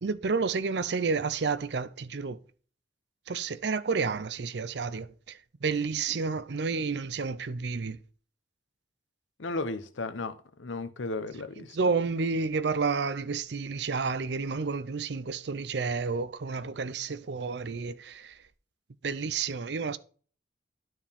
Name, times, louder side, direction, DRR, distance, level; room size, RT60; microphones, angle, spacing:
voice 1, 0.0-2.4 3.3-8.0 11.6-18.4 19.0-20.0, right 4 dB, 65° right, 0.5 m, -30 dB
voice 2, 9.4-11.8, left 2 dB, 85° left, 0.9 m, -35 dB
12.5 x 4.6 x 3.5 m
head